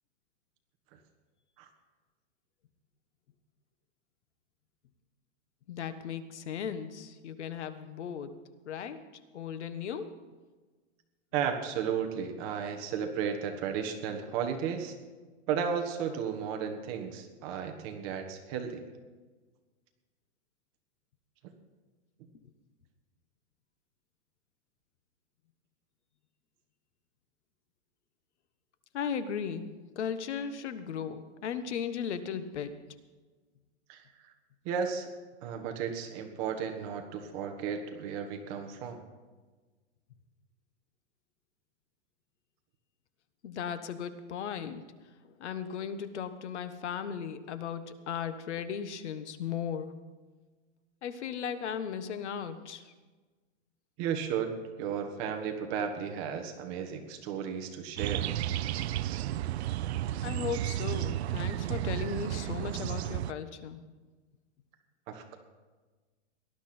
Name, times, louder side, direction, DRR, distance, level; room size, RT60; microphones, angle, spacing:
voice 1, 5.7-9.0 9.3-10.1 28.9-32.7 43.4-44.8 45.2-50.0 51.0-52.9 60.2-63.8, left 7 dB, 80° left, 11 dB, 1.4 m, -36 dB
voice 2, 11.3-14.9 15.5-18.8 33.9-34.3 34.6-35.1 35.4-39.0 54.0-54.5 54.8-58.3 65.1-65.4, right 7 dB, 30° right, 5 dB, 1.4 m, -34 dB
sound 1, 58.0-63.3, right 13 dB, 70° right, 0.6 m, -32 dB
18.5 x 12.0 x 4.4 m, 1.3 s
supercardioid pair, 165°, 34 cm